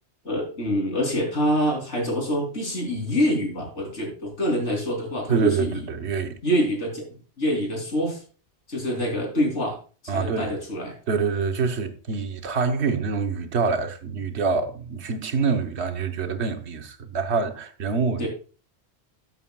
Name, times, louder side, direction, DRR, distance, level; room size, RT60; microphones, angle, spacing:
voice 1, 0.3-5.8 6.4-7.1 7.4-8.2 8.7-9.8 10.0-11.0 18.2-18.3, equal, 85° left, 3.6 m, -25 dB
voice 2, 5.3-6.4 10.1-10.5 11.1-18.3, right 5 dB, 70° right, 1.2 m, -26 dB
13.0 x 8.1 x 2.3 m
omnidirectional pair, 1.2 m